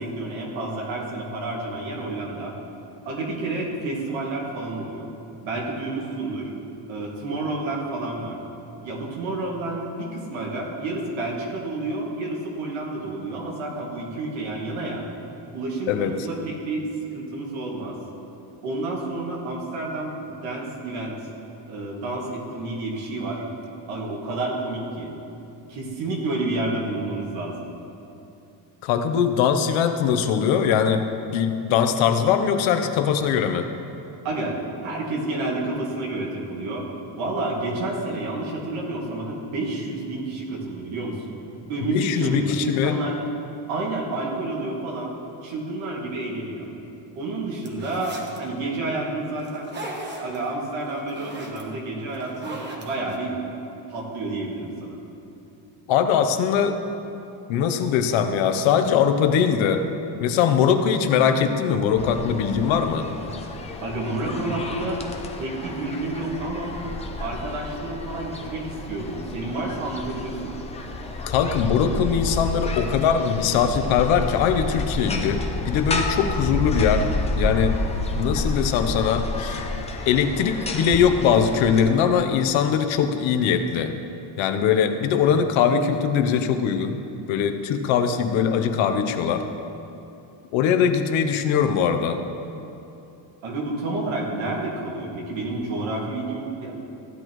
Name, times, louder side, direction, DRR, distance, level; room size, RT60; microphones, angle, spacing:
voice 1, 0.0-2.6 3.0-5.1 5.4-6.5 6.9-8.4 8.8-15.0 15.5-16.9 17.1-18.0 18.6-21.2 21.7-23.4 23.9-25.1 25.7-27.6 34.2-36.9 37.2-41.4 41.7-43.1 43.7-45.1 45.4-46.7 47.2-49.7 50.2-53.4 53.9-55.0 63.8-65.0 65.4-66.8 67.2-70.5 93.4-96.7, right 2 dB, 90° right, -2 dB, 2.3 m, -29 dB
voice 2, 28.8-33.7 41.9-43.0 55.9-56.8 57.5-59.9 60.2-63.1 71.3-77.1 77.4-77.8 78.2-79.6 80.1-83.9 84.4-87.0 87.3-89.5 90.5-92.2, left 7 dB, 85° left, 7 dB, 0.9 m, -21 dB
sound 1, 47.6-48.4 49.4-50.4 50.8-51.6 52.1-53.2, right 2 dB, 25° right, 1.0 m, -36 dB
sound 2, 62.0-81.8, left 2 dB, 15° left, 0.4 m, -30 dB
15.0 x 10.0 x 3.1 m, 2.8 s
cardioid pair, 170°, 46 cm